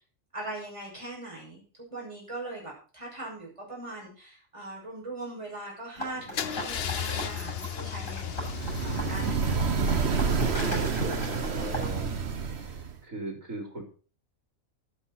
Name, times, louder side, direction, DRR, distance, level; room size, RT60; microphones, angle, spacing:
voice 1, 0.3-10.3 11.6-12.1, right 2 dB, 20° right, -3 dB, 6.6 m, -41 dB
sound 1, 6.0-12.0, equal, 70° left, 7.5 m, -38 dB
Car / Engine starting / Idling, 6.3-12.2, left 8 dB, 50° left, 1.0 m, -36 dB
sound 2, 8.3-13.0, right 5 dB, 55° right, 1.4 m, -29 dB
voice 2, 10.8-12.2 13.0-13.8, right 1 dB, 70° right, 2 dB, 4.4 m, -38 dB
13.0 x 11.5 x 4.4 m, 0.37 s
omnidirectional pair, 1.4 m